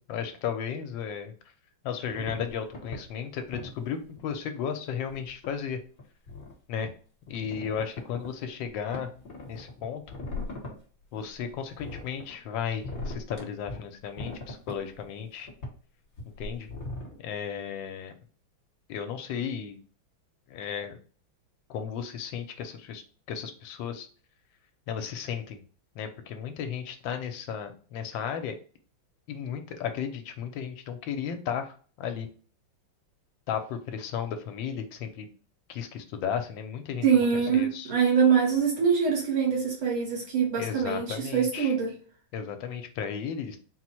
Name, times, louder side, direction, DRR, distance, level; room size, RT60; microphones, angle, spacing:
voice 1, 0.1-1.3 1.8-5.8 6.7-6.9 7.3-9.1 9.5-10.0 11.1-15.5 16.4-16.7 17.2-18.1 18.9-19.8 20.5-21.0 21.7-23.0 23.3-24.1 24.9-25.6 25.9-28.6 29.3-32.3 33.5-35.3 35.7-37.1 37.3-37.9 40.6-41.7 42.3-43.6, left 7 dB, 75° left, 1.3 m, -34 dB
sound 1, 2.1-3.0 3.5-3.8 4.2-4.3 5.1-5.5 6.0-6.5 6.8-6.9 7.3-8.3 8.6-8.7 8.9-10.7 11.2-12.3 12.8-13.8 14.2-15.1 15.5-15.7 16.2-17.2, left 2 dB, 45° left, 1.7 m, -39 dB
voice 2, 37.0-41.9, right 6 dB, 85° right, 2.3 m, -24 dB
4.3 x 2.1 x 4.4 m
omnidirectional pair, 2.2 m